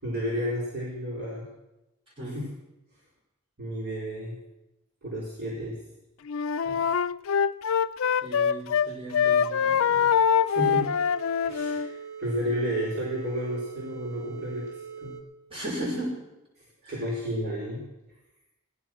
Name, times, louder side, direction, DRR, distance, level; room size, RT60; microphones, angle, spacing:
voice 1, 0.0-1.5 2.3-2.5 3.6-4.4 5.0-5.8 6.6-6.8 10.5-10.9 11.4-15.2 16.6-17.9, equal, 55° right, -5 dB, 4.4 m, -32 dB
Wind instrument woodwind instrument, 6.3-8.9 9.1-11.9, left 7 dB, 70° left, 0.4 m, -24 dB
voice 2, 8.2-10.1 15.5-16.1 16.8-16.9, right 1 dB, 25° right, -6 dB, 6.5 m, -35 dB
sound 1, 9.9-15.2, right 6 dB, 5° right, 1.3 m, -42 dB
16.5 x 10.5 x 6.1 m, 0.96 s
head